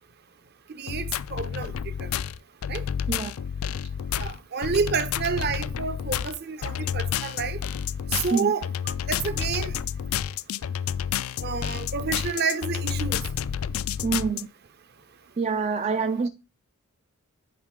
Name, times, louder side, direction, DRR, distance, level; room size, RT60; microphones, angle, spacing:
voice 1, 0.8-1.7 2.0-2.1 2.7-2.8 4.2-7.6 8.1-8.7 9.1-9.7 11.4-13.2, right 5 dB, 45° right, 0.8 m, -29 dB
sound 1, 0.9-14.4, left 8 dB, 70° left, 0.4 m, -30 dB
voice 2, 14.0-14.5 15.4-16.3, right 5 dB, 30° right, 0.4 m, -26 dB
9.4 x 5.3 x 3.7 m
head